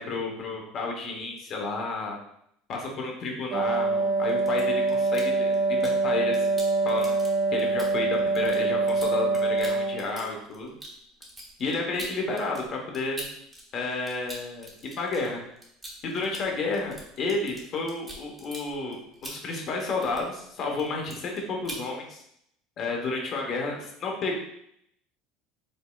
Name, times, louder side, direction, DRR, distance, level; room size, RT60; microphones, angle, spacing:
voice 1, 0.0-2.2 2.7-6.4 6.8-7.1 7.5-10.7 11.6-13.2 13.7-14.7 15.0-15.4 16.0-19.0 19.2-22.2 22.8-24.4, left 3 dB, 35° left, 1 dB, 0.9 m, -31 dB
Wind instrument woodwind instrument, 3.5-10.3, right 3 dB, 35° right, 0.6 m, -25 dB
sound 1, 4.2-6.0 6.3-13.6 13.9-20.5 20.7-21.4 21.6-21.9, right 1 dB, 5° right, 0.8 m, -43 dB
5.3 x 4.1 x 2.3 m, 0.72 s
cardioid pair, 170°, 0 cm